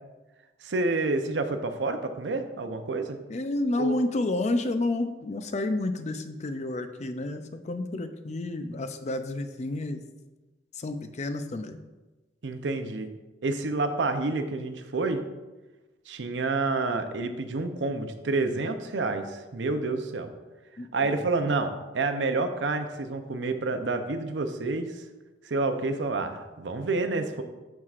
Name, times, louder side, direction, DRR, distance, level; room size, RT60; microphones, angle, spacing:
voice 1, 0.6-3.2 3.8-4.0 12.4-13.1 13.4-15.2 16.1-20.3 20.9-25.0 25.4-27.4, right 3 dB, 90° right, 7 dB, 0.6 m, -29 dB
voice 2, 3.3-10.0 10.7-11.8 20.8-21.3, left 2 dB, 40° left, 8 dB, 0.5 m, -30 dB
11.5 x 4.7 x 2.5 m, 1.2 s
head